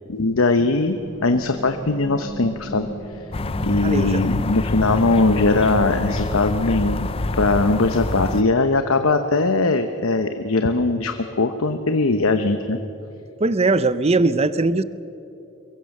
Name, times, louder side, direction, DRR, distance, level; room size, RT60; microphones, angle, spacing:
voice 1, 0.1-2.9 3.6-7.1 7.3-12.8, left 3 dB, 80° left, 7 dB, 1.0 m, -20 dB
sound 1, 0.6-8.3, right 1 dB, 50° left, 5.0 m, -37 dB
sound 2, 3.3-8.4, left 3 dB, 25° left, 0.5 m, -27 dB
voice 2, 3.8-4.2 13.4-14.8, right 3 dB, 30° right, 14 dB, 0.6 m, -20 dB
23.0 x 22.5 x 6.6 m, 2.8 s
head